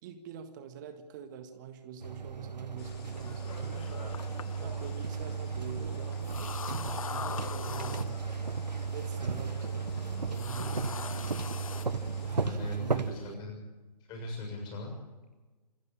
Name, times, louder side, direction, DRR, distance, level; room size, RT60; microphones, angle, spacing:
voice 1, 0.0-8.2 8.9-11.6 12.2-13.6, right 8 dB, 30° right, 9 dB, 1.7 m, -45 dB
sound 1, 2.0-13.1, right 4 dB, 80° right, 1.2 m, -35 dB
sound 2, 2.8-12.5, left 6 dB, 35° left, 3.2 m, -56 dB
sound 3, 3.2-13.3, left 7 dB, 55° left, 0.6 m, -44 dB
voice 2, 12.4-13.6 14.1-14.9, left 2 dB, 20° left, 2 dB, 7.0 m, -40 dB
27.0 x 12.0 x 8.8 m, 1.2 s
figure-of-eight pair, 130°, 21 cm